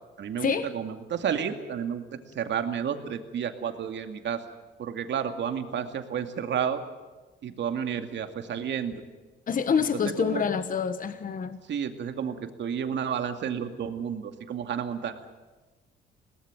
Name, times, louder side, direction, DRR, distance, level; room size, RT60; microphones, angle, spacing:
voice 1, 0.2-4.4 4.8-6.8 7.4-8.9 9.8-9.9 10.2-10.4 11.7-15.3, right 8 dB, 65° right, 7 dB, 2.4 m, -31 dB
voice 2, 9.5-11.6, left 6 dB, 45° left, 11 dB, 1.2 m, -27 dB
21.0 x 18.5 x 8.9 m, 1.2 s
cardioid pair, 90°, 20 cm